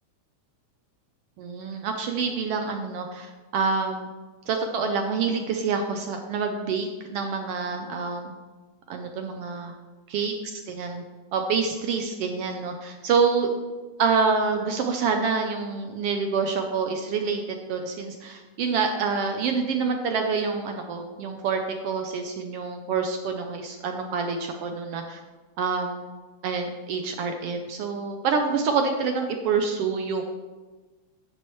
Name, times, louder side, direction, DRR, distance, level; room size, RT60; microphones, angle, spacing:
voice 1, 1.4-4.1 4.5-8.3 8.9-9.7 10.1-10.3 10.7-11.0 11.3-13.5 14.0-25.2 25.6-26.0 26.4-30.2, right 5 dB, 85° right, 5 dB, 1.3 m, -27 dB
10.0 x 8.6 x 3.1 m, 1.3 s
omnidirectional pair, 3.5 m